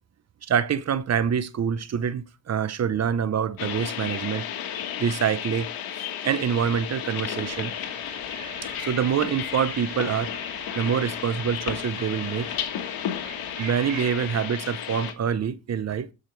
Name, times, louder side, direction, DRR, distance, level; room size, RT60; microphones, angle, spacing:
voice 1, 0.4-4.5 5.0-5.7 6.2-7.7 8.8-10.3 10.7-12.5 13.6-16.1, right 8 dB, 45° right, 0.8 m, -26 dB
sound 1, 3.6-15.1, left 10 dB, 85° left, 1.5 m, -33 dB
sound 2, 7.4-14.0, right 6 dB, 80° right, 3.6 m, -44 dB
14.0 x 5.2 x 4.6 m
cardioid pair, 90°, 35 cm